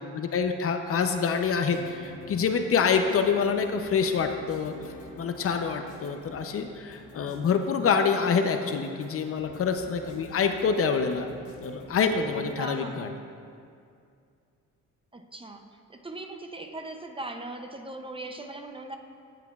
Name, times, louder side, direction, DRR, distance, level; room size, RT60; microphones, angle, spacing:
voice 1, 0.1-4.7 5.2-11.3 11.6-13.1, left 6 dB, 50° left, 6 dB, 0.6 m, -26 dB
sound 1, 1.5-12.5, left 2 dB, 85° left, 1.1 m, -49 dB
voice 2, 12.6-13.2 15.1-19.0, right 2 dB, 20° right, 5 dB, 0.5 m, -39 dB
17.5 x 5.9 x 2.4 m, 2.4 s
cardioid pair, 90°, 30 cm